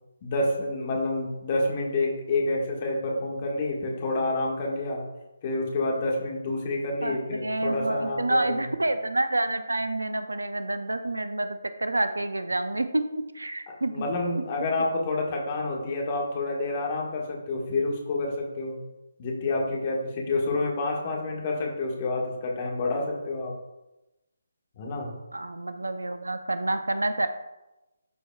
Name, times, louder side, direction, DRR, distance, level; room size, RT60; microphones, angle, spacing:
voice 1, 0.2-5.0 5.4-8.6 13.7-18.8 19.2-23.5 24.8-25.1, left 2 dB, 30° left, -1 dB, 1.6 m, -28 dB
voice 2, 7.0-14.1 25.3-27.3, right 2 dB, 75° right, 10 dB, 0.6 m, -28 dB
12.5 x 4.5 x 2.3 m, 0.99 s
figure-of-eight pair, 145°, 0 cm